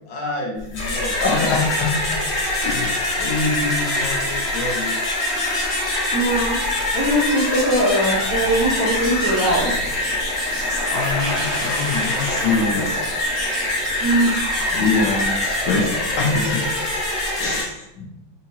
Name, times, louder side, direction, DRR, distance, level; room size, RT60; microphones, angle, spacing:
voice 1, 0.1-1.9 2.6-4.9 10.9-12.8 14.7-15.9 16.2-16.7 17.4-18.1, left 3 dB, 90° left, -1 dB, 1.8 m, -24 dB
sound 1, 0.6-17.6, left 1 dB, 45° left, 1.0 m, -24 dB
voice 2, 6.1-6.6 6.9-9.7 14.0-14.3, right 1 dB, 25° right, -7 dB, 0.6 m, -20 dB
5.0 x 2.9 x 2.8 m, 0.82 s
omnidirectional pair, 2.1 m